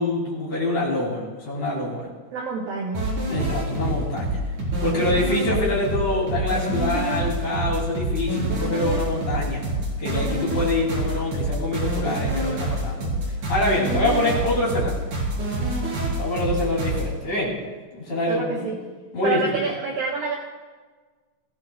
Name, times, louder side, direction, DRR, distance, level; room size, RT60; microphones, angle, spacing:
voice 1, 0.0-2.1 3.3-4.4 4.8-9.6 10.0-13.1 13.5-15.0 16.2-17.5 17.9-18.7 19.1-19.6, left 2 dB, 40° left, -4 dB, 3.9 m, -25 dB
voice 2, 2.3-3.0 18.3-18.8 19.2-20.3, right 5 dB, 70° right, -1 dB, 2.2 m, -27 dB
sound 1, 2.9-17.1, right 1 dB, 40° right, 5.4 m, -26 dB
20.5 x 16.5 x 2.4 m, 1.4 s
omnidirectional pair, 5.8 m